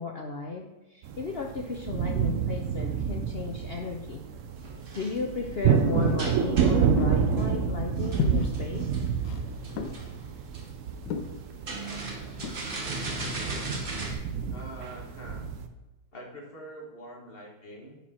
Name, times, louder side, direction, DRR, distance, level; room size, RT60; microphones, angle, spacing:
voice 1, 0.0-4.2 4.9-8.9, left 4 dB, 65° left, 2 dB, 0.6 m, -34 dB
sound 1, 1.0-15.7, right 7 dB, 65° right, 0.8 m, -29 dB
sound 2, 4.4-14.1, right 2 dB, 35° right, 1.1 m, -39 dB
sound 3, 6.1-14.4, left 6 dB, 90° left, 1.4 m, -37 dB
voice 2, 14.5-15.4 16.1-18.0, right 1 dB, 35° left, -1 dB, 1.8 m, -44 dB
9.4 x 4.6 x 4.3 m, 1.1 s
omnidirectional pair, 1.8 m